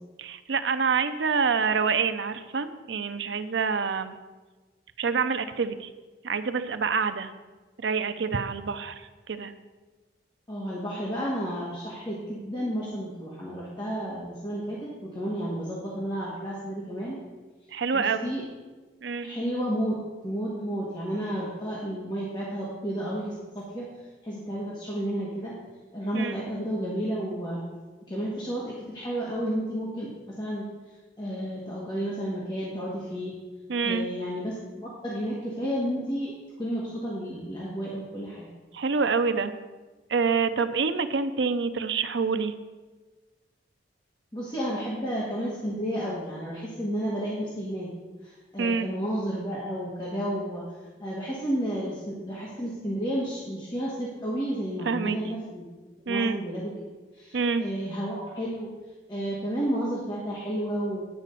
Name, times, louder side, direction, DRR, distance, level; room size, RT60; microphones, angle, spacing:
voice 1, 0.2-4.2 5.0-5.9 6.2-7.3 7.8-9.5 17.7-18.3 19.0-19.3 26.1-26.4 33.7-34.1 38.7-39.5 40.1-42.5 48.6-48.9 54.9-55.2 56.1-56.4 57.3-57.6, right 5 dB, 75° right, 10 dB, 0.6 m, -27 dB
voice 2, 10.5-17.2 17.9-18.4 19.2-20.0 20.2-23.9 24.2-25.5 25.9-27.6 28.1-33.3 33.8-36.3 36.6-38.5 44.3-47.9 48.2-50.6 51.0-55.6 56.0-56.7 57.1-58.7 59.1-61.0, equal, 25° left, -6 dB, 1.6 m, -32 dB
9.9 x 4.9 x 6.8 m, 1.3 s
head